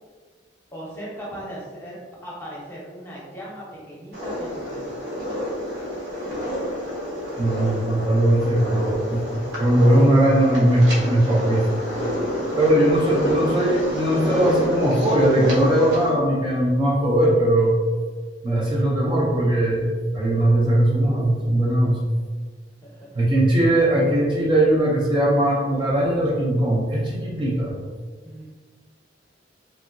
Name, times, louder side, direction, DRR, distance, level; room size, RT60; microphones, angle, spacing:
voice 1, 0.7-5.0 12.3-13.0 22.8-23.3 28.2-28.4, equal, 15° left, -6 dB, 0.8 m, -38 dB
sound 1, 4.1-16.1, equal, 70° right, 1.0 m, -28 dB
voice 2, 7.4-9.2 9.6-11.6 12.6-17.7 18.4-22.0 23.1-27.8, right 1 dB, 30° right, -5 dB, 0.5 m, -19 dB
2.9 x 2.7 x 2.5 m, 1.5 s
head